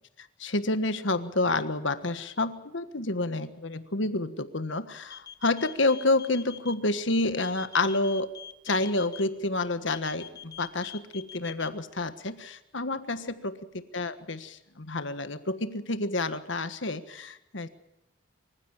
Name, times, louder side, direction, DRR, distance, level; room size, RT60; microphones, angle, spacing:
voice 1, 0.4-8.3 8.6-17.7, left 2 dB, 65° left, 11 dB, 1.5 m, -29 dB
sound 1, 5.1-6.7 7.4-9.2 9.9-11.7, left 8 dB, 20° left, 1.0 m, -44 dB
25.0 x 15.5 x 9.0 m, 0.90 s
head